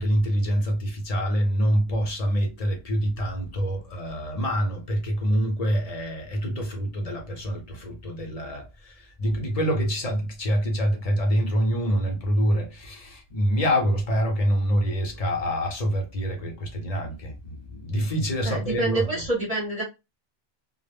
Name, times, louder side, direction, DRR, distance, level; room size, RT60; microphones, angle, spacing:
voice 1, 0.0-8.9 9.2-19.1, equal, 40° left, 0.7 m, -26 dB
voice 2, 18.4-19.8, right 2 dB, 40° right, 0.8 m, -27 dB
2.1 x 2.0 x 3.3 m
omnidirectional pair, 1.0 m